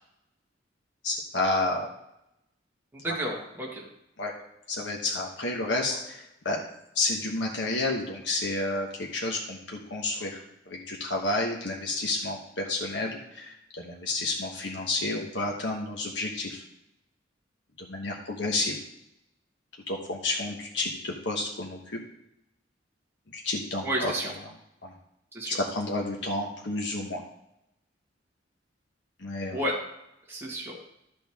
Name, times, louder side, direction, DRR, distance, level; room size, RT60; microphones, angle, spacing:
voice 1, 1.0-1.9 3.0-3.1 4.2-4.3 4.7-6.6 6.9-10.4 10.7-16.6 17.8-18.8 19.9-22.0 23.3-24.1 24.8-24.9 25.5-27.2 29.2-29.6, left 2 dB, 70° left, -1 dB, 1.2 m, -30 dB
voice 2, 3.0-3.9 23.8-24.3 25.3-25.5 29.5-29.8 30.3-30.8, right 1 dB, 15° right, -4 dB, 1.8 m, -31 dB
12.0 x 6.4 x 3.6 m, 0.83 s
head